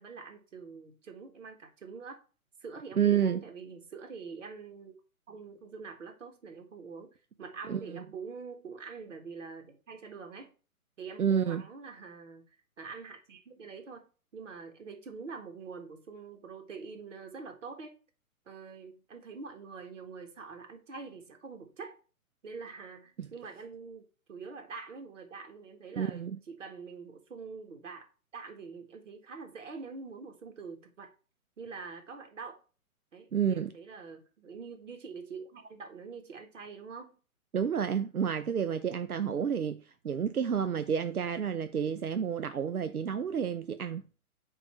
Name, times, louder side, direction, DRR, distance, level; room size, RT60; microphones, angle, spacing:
voice 1, 0.0-2.2 2.6-4.9 5.3-7.1 7.4-10.5 11.0-14.1 14.3-18.0 18.5-22.0 22.4-28.1 28.3-31.1 31.6-32.6 33.1-37.2, right 5 dB, 60° right, 1.7 m, -45 dB
voice 2, 3.0-3.4 7.7-8.0 11.2-11.6 23.2-23.3 25.9-26.4 33.3-33.7 37.5-44.0, right 8 dB, 90° right, 0.6 m, -30 dB
8.4 x 3.2 x 4.4 m
figure-of-eight pair, 130°, 43 cm